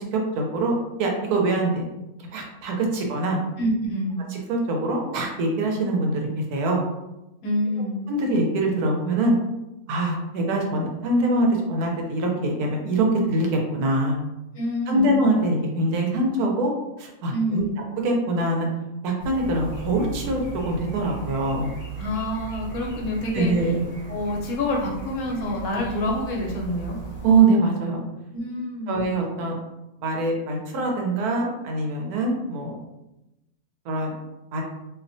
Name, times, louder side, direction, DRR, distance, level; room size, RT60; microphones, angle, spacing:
voice 1, 0.1-0.7 1.0-1.8 2.3-3.4 4.3-6.8 8.1-9.4 9.9-14.2 14.9-16.7 17.0-17.6 18.0-18.7 19.0-21.7 23.3-23.8 27.2-28.0 28.9-29.5 30.0-32.8 33.9-34.1 34.5-34.6, right 2 dB, 80° right, 1 dB, 1.1 m, -23 dB
voice 2, 3.6-4.2 7.4-8.0 14.5-15.2 17.3-17.8 22.0-23.5 24.1-27.0 28.3-29.0, left 1 dB, 70° left, -1 dB, 1.0 m, -27 dB
sound 1, 19.2-27.4, right 4 dB, 35° left, 0.7 m, -37 dB
2.7 x 2.1 x 2.5 m, 0.95 s
omnidirectional pair, 1.6 m